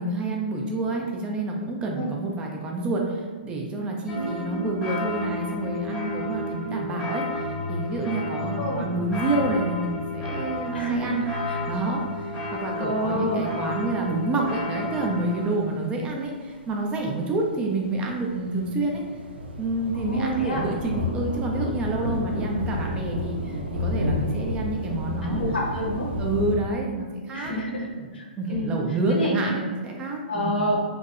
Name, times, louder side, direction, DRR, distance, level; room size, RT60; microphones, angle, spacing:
voice 1, 0.0-11.2 11.7-19.0 19.6-25.4 26.1-27.5 28.0-28.1 28.4-30.6, right 2 dB, 20° right, 0 dB, 0.3 m, -28 dB
voice 2, 4.1-4.7 8.6-8.9 10.7-11.6 12.8-13.5 19.9-20.6 22.0-22.4 25.2-26.1 27.3-27.9 28.1-28.8 29.1-29.6 30.3-30.8, equal, 70° left, -1 dB, 0.6 m, -29 dB
sound 1, 4.1-15.6, left 1 dB, ahead, 0.9 m, -32 dB
sound 2, 11.1-11.6 12.1-12.2 12.5-12.6 14.9-15.0 16.8-17.0 17.3-26.6, left 1 dB, 85° right, 0.4 m, -31 dB
2.5 x 2.0 x 2.4 m, 1.5 s
figure-of-eight pair, 120°, 6 cm